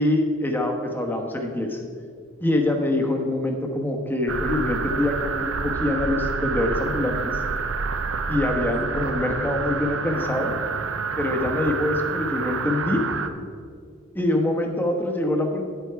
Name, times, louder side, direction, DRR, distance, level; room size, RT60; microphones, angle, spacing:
voice 1, 0.0-1.8 2.4-7.4 8.3-10.5 11.2-13.0 14.1-15.6, left 1 dB, 10° left, 2 dB, 1.1 m, -24 dB
sound 1, 4.3-13.3, right 5 dB, 80° right, 0.6 m, -28 dB
10.0 x 8.1 x 4.6 m, 2.1 s
head